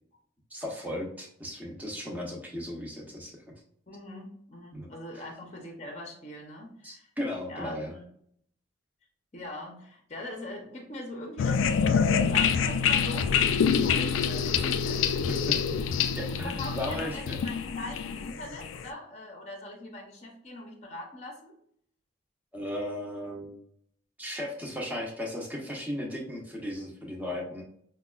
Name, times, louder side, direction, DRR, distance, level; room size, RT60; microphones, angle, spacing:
voice 1, 0.5-3.3 4.7-4.9 5.1-5.2 6.8-7.9 15.3-15.5 15.9-17.4 22.5-23.6 24.2-27.6, left 1 dB, 10° right, -1 dB, 0.7 m, -36 dB
voice 2, 3.9-7.1 7.5-8.1 9.3-15.3 16.2-21.5, left 1 dB, 35° left, 2 dB, 0.6 m, -42 dB
sound 1, 11.4-18.9, left 6 dB, 85° left, 0.3 m, -26 dB
5.1 x 2.2 x 2.3 m, 0.66 s
head